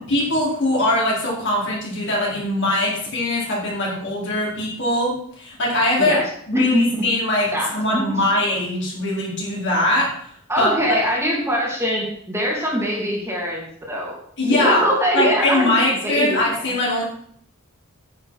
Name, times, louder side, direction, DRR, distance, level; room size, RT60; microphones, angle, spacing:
voice 1, 0.1-6.2 6.5-10.1 10.6-10.7 14.4-14.9 15.1-17.0, left 1 dB, 55° left, -4 dB, 4.3 m, -21 dB
voice 2, 6.5-6.8 7.5-7.7 7.9-8.1 10.5-14.2 14.4-16.4, equal, 10° right, -3 dB, 2.5 m, -22 dB
9.6 x 8.6 x 4.8 m, 0.64 s
head